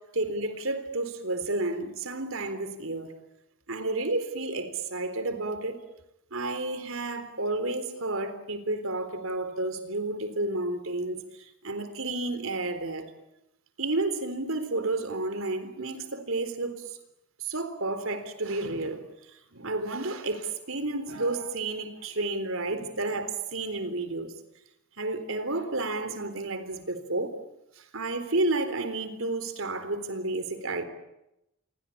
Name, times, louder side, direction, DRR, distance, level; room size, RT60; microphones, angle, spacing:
voice 1, 0.2-3.1 3.7-5.8 6.3-13.1 13.8-17.0 17.4-19.0 19.3-24.3 25.0-27.4 27.8-30.8, right 2 dB, 70° right, 3.8 m, -31 dB
27.5 x 24.0 x 8.6 m
head